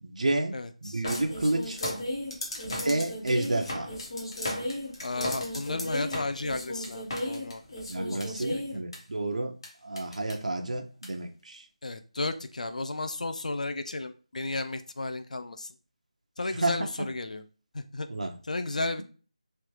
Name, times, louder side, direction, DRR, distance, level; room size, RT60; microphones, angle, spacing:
voice 1, 0.0-1.8 2.7-3.9 7.9-9.5 9.8-11.7 16.6-16.8 18.1-18.3, right 2 dB, 75° right, 4 dB, 0.5 m, -30 dB
voice 2, 0.5-1.0 5.0-7.6 8.1-8.6 11.8-15.7 16.4-17.4 17.7-18.1 18.4-19.0, left 2 dB, 80° left, 9 dB, 0.4 m, -33 dB
sound 1, 1.0-9.0 9.6-9.7 10.0-10.3 11.0-11.1, left 1 dB, 45° left, 1.0 m, -34 dB
3.1 x 2.3 x 3.0 m, 0.37 s
figure-of-eight pair, 175°, 4 cm